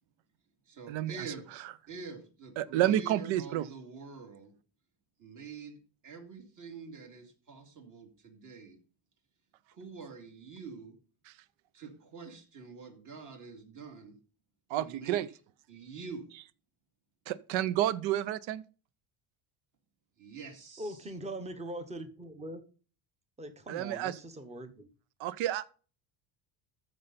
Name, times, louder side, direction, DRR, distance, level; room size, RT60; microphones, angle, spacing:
voice 1, 0.7-1.5 1.9-4.5 5.2-8.8 9.7-11.0 11.7-14.2 14.7-15.2 15.7-16.3 20.2-21.1, right 5 dB, 40° right, 2.5 m, -46 dB
voice 2, 2.6-3.6 14.7-15.3 17.3-18.6 23.7-24.1 25.2-25.7, right 13 dB, 65° right, 0.8 m, -30 dB
voice 3, 20.8-22.6 23.4-24.9, right 1 dB, 15° right, 1.0 m, -41 dB
13.5 x 5.5 x 4.1 m
cardioid pair, 165°, 50 cm